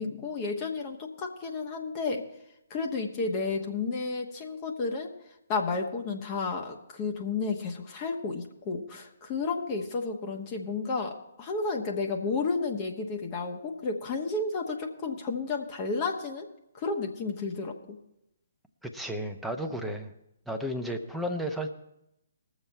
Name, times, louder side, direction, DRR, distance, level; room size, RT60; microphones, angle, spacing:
voice 1, 0.0-2.2 2.7-5.1 5.5-16.5 16.7-18.0, left 4 dB, 30° left, 2 dB, 1.1 m, -32 dB
voice 2, 18.8-20.1 20.5-21.7, equal, ahead, 3 dB, 0.8 m, -33 dB
19.5 x 7.2 x 4.5 m, 0.85 s
figure-of-eight pair, 135°, 0 cm